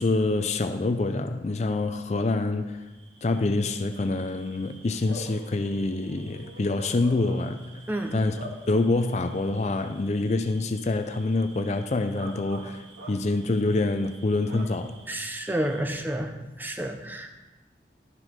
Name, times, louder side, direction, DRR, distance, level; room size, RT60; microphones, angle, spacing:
voice 1, 0.0-2.8 3.2-7.6 8.1-8.3 8.7-15.0, left 2 dB, 40° left, 8 dB, 0.4 m, -26 dB
Bark / Cricket, 2.8-16.1, right 2 dB, 85° right, 1.8 m, -47 dB
voice 2, 15.1-17.3, right 1 dB, 10° right, 5 dB, 0.7 m, -30 dB
11.5 x 6.3 x 5.1 m, 1.2 s
head